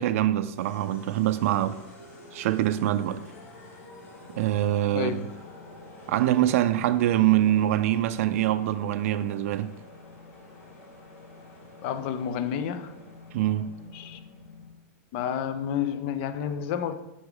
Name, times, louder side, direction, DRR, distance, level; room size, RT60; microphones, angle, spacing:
voice 1, 0.0-1.8 2.3-3.2 4.4-5.2 6.1-9.7 13.3-13.7, right 13 dB, 65° right, 0.4 m, -24 dB
sound 1, 0.5-14.8, left 2 dB, 75° left, 2.0 m, -48 dB
voice 2, 4.9-5.3 11.8-13.0 13.9-14.2 15.1-17.0, left 8 dB, 45° left, 0.5 m, -30 dB
5.8 x 5.2 x 3.9 m
supercardioid pair, 160°, 8 cm